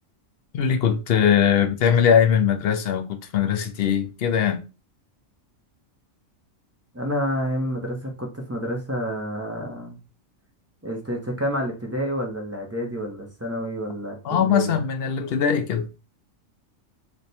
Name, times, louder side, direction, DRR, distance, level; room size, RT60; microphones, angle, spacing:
voice 1, 0.5-4.6 14.2-15.9, left 8 dB, 60° left, 0.7 m, -21 dB
voice 2, 6.9-10.0 10.8-14.8, equal, 15° right, 0.6 m, -29 dB
3.3 x 2.2 x 4.1 m
omnidirectional pair, 1.3 m